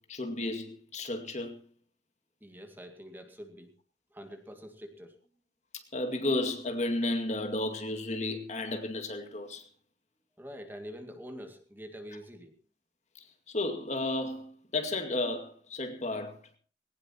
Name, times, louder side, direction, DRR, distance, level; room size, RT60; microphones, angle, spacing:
voice 1, 0.1-1.6 5.7-9.7 13.5-16.4, left 2 dB, 40° left, 2.2 m, -33 dB
voice 2, 2.4-3.7 4.1-5.1 10.4-12.5, equal, 10° right, 2.1 m, -45 dB
20.5 x 18.5 x 3.0 m
head